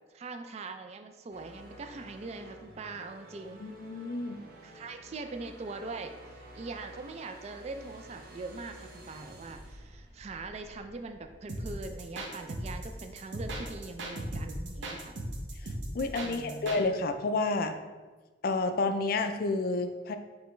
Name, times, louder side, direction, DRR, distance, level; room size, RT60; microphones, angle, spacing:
voice 1, 0.1-3.6 4.6-6.1 6.5-15.2 16.2-16.8, right 3 dB, 35° right, 7 dB, 0.3 m, -42 dB
sound 1, 1.3-14.3, right 1 dB, 50° right, 0.7 m, -52 dB
voice 2, 3.6-4.4 15.9-17.7 18.4-20.1, left 3 dB, 50° left, 7 dB, 0.3 m, -30 dB
sound 2, 11.5-16.8, right 1 dB, 80° right, 0.7 m, -37 dB
4.9 x 3.3 x 3.1 m, 1.3 s
head